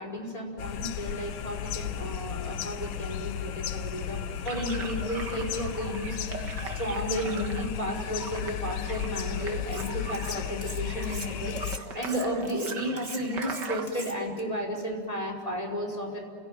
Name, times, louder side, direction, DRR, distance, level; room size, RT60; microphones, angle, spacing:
voice 1, 0.0-16.2, equal, 15° left, 0 dB, 4.9 m, -33 dB
sound 1, 0.6-11.8, left 10 dB, 70° left, 1.5 m, -34 dB
sound 2, 4.5-13.9, right 4 dB, 55° right, 2.2 m, -41 dB
Cutlery silverware, 9.7-10.3 10.6-14.4, right 2 dB, 20° right, 2.3 m, -41 dB
29.5 x 17.5 x 9.3 m, 2.2 s
omnidirectional pair, 2.4 m